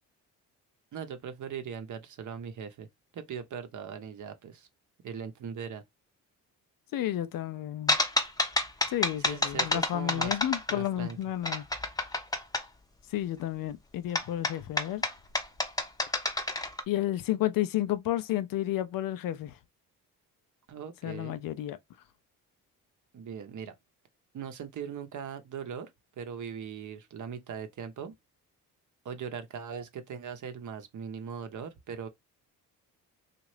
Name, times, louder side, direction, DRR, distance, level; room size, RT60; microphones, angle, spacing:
voice 1, 0.9-2.9 3.1-4.7 5.0-5.8 9.2-10.4 10.7-11.2 20.7-21.4 23.1-23.7 24.3-25.9 26.2-28.1 29.0-32.1, right 7 dB, 50° right, 0.8 m, -40 dB
voice 2, 6.9-8.0 8.9-11.6 13.1-15.0 16.9-19.5 21.0-21.8, left 13 dB, 60° left, 0.5 m, -31 dB
sound 1, 7.9-11.1 11.4-12.6 14.1-16.8, left 2 dB, 10° left, 0.7 m, -29 dB
2.8 x 2.4 x 3.1 m
supercardioid pair, 65°, 37 cm